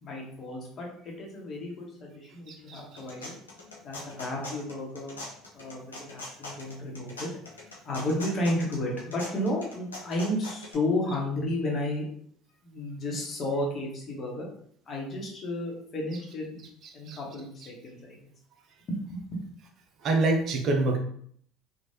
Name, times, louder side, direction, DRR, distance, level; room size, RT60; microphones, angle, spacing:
voice 1, 0.0-3.3 3.8-5.2 5.5-7.3 7.8-12.1 12.6-14.5 14.9-16.5 16.9-18.2 18.9-19.4, left 1 dB, 40° left, -2 dB, 1.1 m, -32 dB
voice 2, 2.5-2.8 16.1-16.2 16.8-17.2 17.6-17.7 20.0-21.0, right 3 dB, 50° right, 3 dB, 0.5 m, -27 dB
sound 1, 2.7-10.7, left 2 dB, 90° left, 0.5 m, -42 dB
3.1 x 2.4 x 2.7 m, 0.62 s
hypercardioid pair, 65°, 0 cm